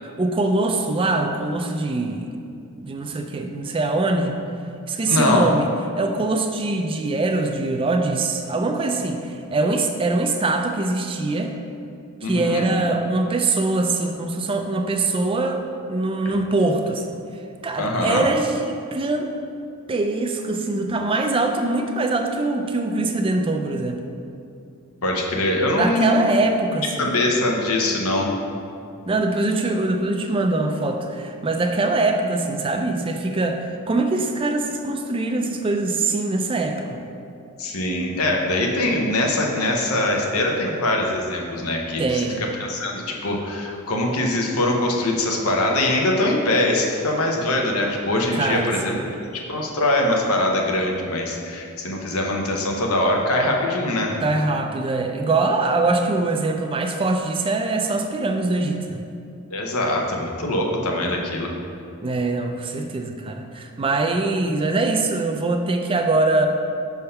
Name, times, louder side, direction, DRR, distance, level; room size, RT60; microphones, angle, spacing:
voice 1, 0.0-2.3 2.8-4.4 4.9-5.7 6.0-11.5 12.2-15.6 15.9-17.2 17.6-19.3 19.9-24.0 25.8-27.1 29.1-37.0 42.0-42.4 48.3-49.0 54.2-59.0 62.0-66.5, right 2 dB, 25° right, 4 dB, 0.4 m, -23 dB
voice 2, 5.0-5.5 12.2-12.7 17.8-18.3 25.0-26.5 27.0-28.3 37.6-42.2 42.6-49.2 49.5-54.2 59.5-61.5, left 1 dB, 75° left, 0 dB, 0.8 m, -22 dB
5.5 x 3.5 x 5.6 m, 2.6 s
head